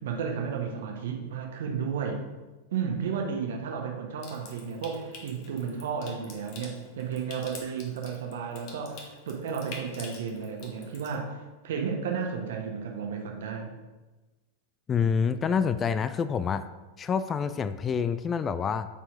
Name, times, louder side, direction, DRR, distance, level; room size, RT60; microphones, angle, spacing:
voice 1, 0.0-2.2 2.7-11.4 11.6-13.7, right 6 dB, 60° right, 2 dB, 1.3 m, -33 dB
Water tap faucet / Sink (filling or washing) / Trickle dribble, 4.2-11.2, left 3 dB, 45° left, 1.4 m, -47 dB
voice 2, 14.9-16.6 17.0-18.9, left 6 dB, 20° left, 12 dB, 0.3 m, -27 dB
8.7 x 4.5 x 4.8 m, 1.2 s
figure-of-eight pair, 90°, 0 cm